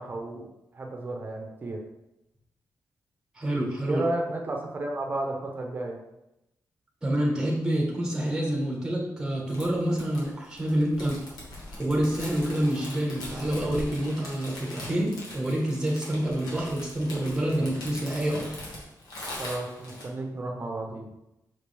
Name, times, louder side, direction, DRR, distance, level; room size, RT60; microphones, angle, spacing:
voice 1, 0.0-1.8 3.9-6.0 19.4-21.1, right 2 dB, 30° right, 1 dB, 1.0 m, -33 dB
voice 2, 3.3-4.0 7.0-11.2 11.7-18.4, right 1 dB, 10° right, -2 dB, 1.4 m, -27 dB
sound 1, 9.5-20.1, left 1 dB, 80° left, 1.9 m, -41 dB
5.8 x 4.9 x 3.5 m, 0.88 s
wide cardioid pair, 175°, 6 cm